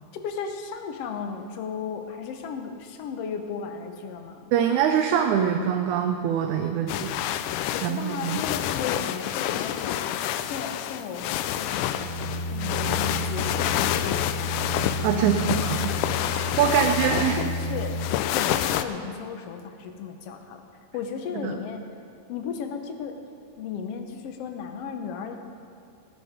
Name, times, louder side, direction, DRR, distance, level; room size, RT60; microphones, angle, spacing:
voice 1, 0.1-4.5 7.7-10.0 10.3-12.0 12.5-14.4 15.1-15.6 16.6-20.7 20.9-21.8 22.3-23.2 23.6-25.4, left 6 dB, 65° left, 5 dB, 1.7 m, -35 dB
voice 2, 4.5-7.2 7.8-8.4 15.0-16.0 16.3-17.4 21.4-21.6, right 8 dB, 80° right, 4 dB, 2.0 m, -24 dB
sound 1, 6.9-18.8, left 11 dB, 85° left, 2.1 m, -28 dB
sound 2, 11.9-18.1, left 1 dB, 45° right, 3.1 m, -31 dB
19.0 x 7.8 x 5.1 m, 2.4 s
omnidirectional pair, 3.5 m